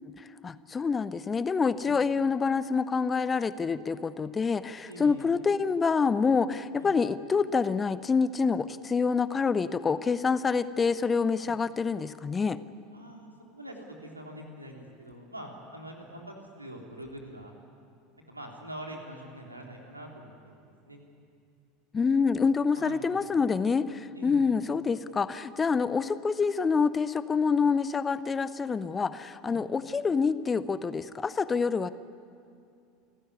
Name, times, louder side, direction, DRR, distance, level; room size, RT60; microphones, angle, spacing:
voice 1, 0.2-12.6 21.9-31.9, left 5 dB, 20° left, 15 dB, 0.8 m, -27 dB
voice 2, 4.9-5.3 6.8-6.9 11.4-11.5 12.9-17.5 18.3-21.0 22.7-23.5 24.1-24.5 29.4-29.6, right 1 dB, 90° right, 1 dB, 3.3 m, -44 dB
28.0 x 15.0 x 9.7 m, 2.5 s
figure-of-eight pair, 75°, 0 cm